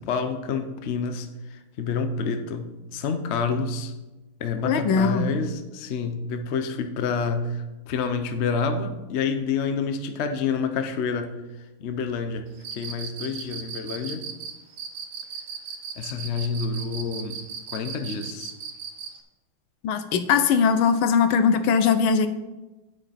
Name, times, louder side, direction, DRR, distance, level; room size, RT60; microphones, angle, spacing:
voice 1, 0.0-3.9 4.4-11.3 11.8-12.4 12.7-14.2 16.0-17.4 17.7-18.5, left 5 dB, 65° left, 7 dB, 0.6 m, -28 dB
voice 2, 4.6-5.3 19.8-22.3, left 6 dB, 80° left, 10 dB, 1.6 m, -20 dB
Cricket, 12.6-19.2, right 7 dB, 70° right, 1.6 m, -36 dB
9.2 x 8.0 x 4.2 m, 1.1 s
omnidirectional pair, 2.2 m